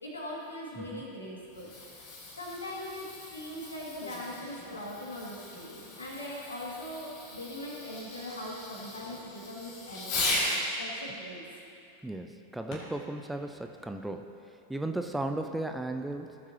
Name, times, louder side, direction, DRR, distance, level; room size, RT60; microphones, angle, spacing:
voice 1, 0.0-2.1 2.4-3.1 3.3-10.4 10.8-11.4, left 1 dB, 75° left, -3 dB, 2.0 m, -41 dB
voice 2, 0.8-1.1 12.0-14.4 14.7-16.4, right 2 dB, 5° right, 5 dB, 0.4 m, -35 dB
Fireworks, 1.4-10.7 12.7-13.0 13.7-13.8, left 2 dB, 45° left, 2.0 m, -38 dB
16.0 x 7.3 x 2.8 m, 2.6 s
figure-of-eight pair, 90°, 0 cm